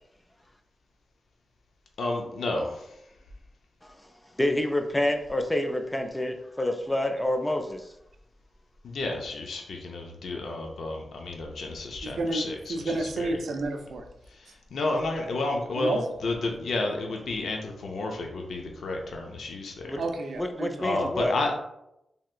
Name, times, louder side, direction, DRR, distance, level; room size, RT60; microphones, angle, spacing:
voice 1, 2.0-3.2 8.8-13.3 14.3-20.0 20.8-21.6, left 2 dB, 85° left, 1 dB, 0.5 m, -31 dB
voice 2, 4.4-7.9 19.8-20.0 20.4-21.3, left 1 dB, 15° left, 5 dB, 0.3 m, -28 dB
voice 3, 12.0-12.4 12.7-14.0 15.8-16.0 20.0-20.7 21.0-21.1, right 2 dB, 85° right, 4 dB, 0.4 m, -30 dB
3.3 x 2.8 x 2.4 m, 0.84 s
wide cardioid pair, 100°, 0 cm